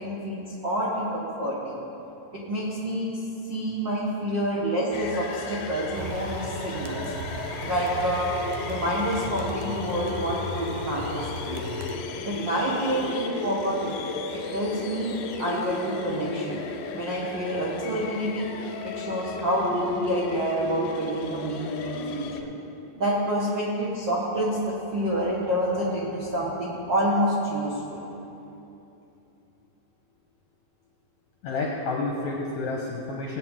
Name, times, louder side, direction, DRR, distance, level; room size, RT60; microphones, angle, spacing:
voice 1, 0.0-1.8 2.3-3.2 3.5-7.0 7.6-11.7 12.2-14.0 14.3-16.6 16.9-18.5 18.8-22.5 22.9-28.0, right 1 dB, 70° right, -6 dB, 1.0 m, -28 dB
sound 1, 4.9-22.4, left 4 dB, 90° left, 2.7 m, -34 dB
sound 2, 5.9-12.0, right 3 dB, 85° right, 1.7 m, -38 dB
voice 2, 31.4-33.4, left 3 dB, 70° left, -2 dB, 1.8 m, -30 dB
19.5 x 8.6 x 3.7 m, 2.9 s
omnidirectional pair, 4.5 m